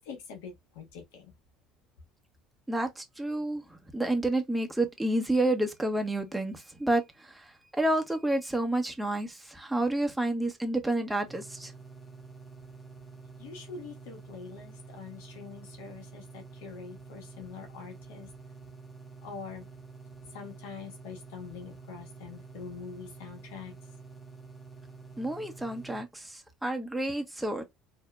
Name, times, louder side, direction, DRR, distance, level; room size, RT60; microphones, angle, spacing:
voice 1, 0.0-1.3 13.4-18.3 19.2-19.6 20.3-23.7, left 6 dB, 80° left, 1.1 m, -44 dB
voice 2, 2.7-11.7 25.2-27.6, right 1 dB, 5° right, 1.0 m, -30 dB
sound 1, 11.3-26.0, right 4 dB, 15° left, 1.5 m, -48 dB
4.3 x 2.8 x 2.3 m
hypercardioid pair, 75°, 0 cm